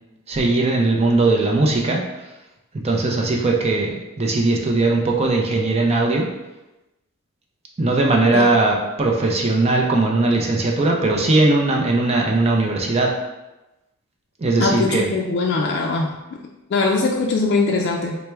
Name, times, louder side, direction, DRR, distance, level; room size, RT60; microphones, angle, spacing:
voice 1, 0.3-2.0 2.8-6.3 7.8-13.1 14.4-15.1, right 2 dB, 30° right, 0 dB, 0.5 m, -19 dB
voice 2, 14.6-16.1 16.7-18.2, left 3 dB, 55° left, 0 dB, 0.3 m, -21 dB
4.4 x 2.1 x 3.3 m, 1.0 s
head